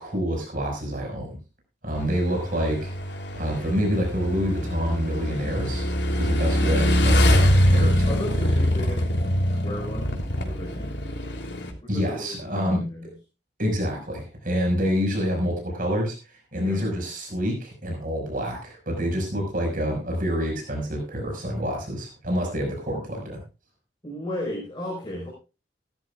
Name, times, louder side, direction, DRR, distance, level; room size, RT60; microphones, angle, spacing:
voice 1, 0.0-1.4 1.8-2.9 3.3-5.9 6.1-8.1 11.9-12.8 13.6-16.2 16.5-23.4, equal, 50° right, 1 dB, 5.8 m, -27 dB
Motorcycle / Engine, 1.9-11.7, equal, 90° left, 3.3 m, -23 dB
voice 2, 8.1-11.2 11.8-13.1 16.6-16.8 24.0-25.3, left 1 dB, 25° left, -2 dB, 4.9 m, -35 dB
18.0 x 12.5 x 2.5 m, 0.31 s
head